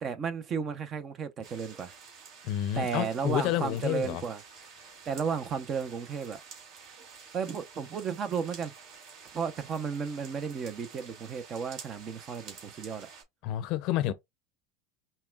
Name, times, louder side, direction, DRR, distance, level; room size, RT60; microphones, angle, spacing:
voice 1, 0.0-1.9 2.7-4.4 5.1-6.4 7.3-8.7 9.3-13.1 14.1-14.2, right 6 dB, 35° right, 0.8 m, -33 dB
sound 1, 1.4-13.2, right 6 dB, 50° right, 2.0 m, -50 dB
voice 2, 2.4-4.2 13.4-14.1, left 13 dB, 55° left, 0.6 m, -29 dB
5.5 x 2.2 x 2.4 m
supercardioid pair, 110°, 0 cm